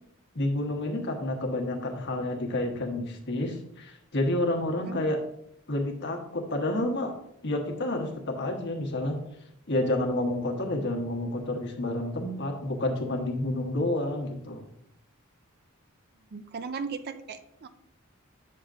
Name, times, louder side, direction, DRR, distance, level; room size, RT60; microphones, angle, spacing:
voice 1, 0.3-5.2 5.7-7.1 7.4-9.2 9.7-14.7, left 1 dB, 55° left, 2 dB, 1.3 m, -29 dB
voice 2, 16.3-17.7, right 5 dB, 50° right, 9 dB, 0.5 m, -37 dB
8.6 x 6.6 x 2.5 m, 0.75 s
head